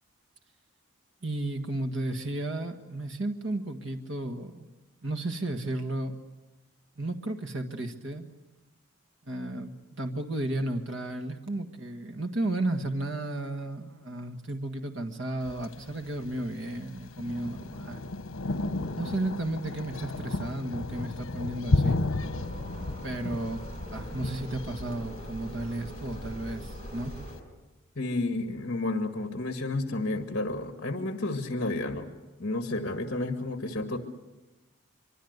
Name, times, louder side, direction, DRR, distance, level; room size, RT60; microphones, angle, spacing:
voice 1, 1.2-4.7 5.0-6.2 7.0-8.3 9.2-18.1 19.0-22.0 23.0-23.6 23.9-27.2, right 1 dB, 60° right, 6 dB, 1.7 m, -33 dB
Thunder, 15.4-27.4, left 2 dB, 80° left, 1.1 m, -34 dB
sound 1, 22.2-27.3, equal, 45° right, 7.0 m, -42 dB
voice 2, 28.0-32.1 32.4-34.0, left 2 dB, 50° left, 6 dB, 1.9 m, -31 dB
24.5 x 23.5 x 8.1 m, 1.1 s
head